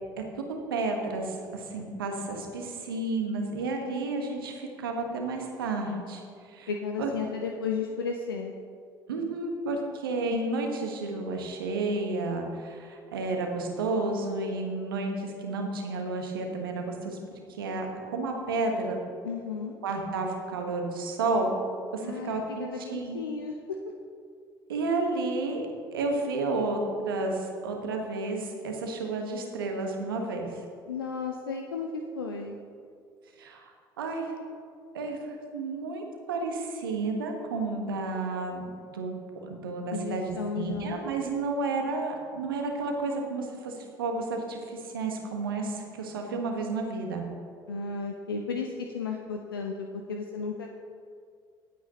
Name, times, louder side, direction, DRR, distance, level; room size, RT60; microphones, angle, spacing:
voice 1, 0.7-6.7 7.0-7.1 9.1-17.2 17.6-17.9 18.1-19.0 19.8-21.6 21.9-23.2 24.7-25.6 25.9-30.6 33.4-33.7 34.0-34.3 34.9-39.1 39.4-47.2, right 3 dB, 75° right, 2 dB, 1.4 m, -31 dB
voice 2, 6.7-8.5 19.2-19.8 22.0-23.6 30.9-32.6 39.9-41.0 47.7-50.7, left 5 dB, 80° left, 3 dB, 0.6 m, -34 dB
17.5 x 8.3 x 2.9 m, 2.3 s
figure-of-eight pair, 55°, 12 cm